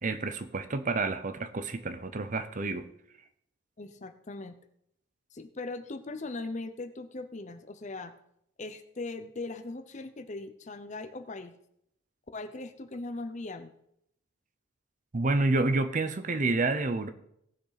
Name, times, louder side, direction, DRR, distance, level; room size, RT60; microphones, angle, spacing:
voice 1, 0.0-2.9 15.1-17.1, right 3 dB, 35° right, 10 dB, 0.6 m, -29 dB
voice 2, 3.8-4.6 5.3-8.1 8.6-11.5 12.3-13.7, left 2 dB, 35° left, 10 dB, 0.7 m, -39 dB
17.5 x 6.5 x 4.1 m, 0.75 s
head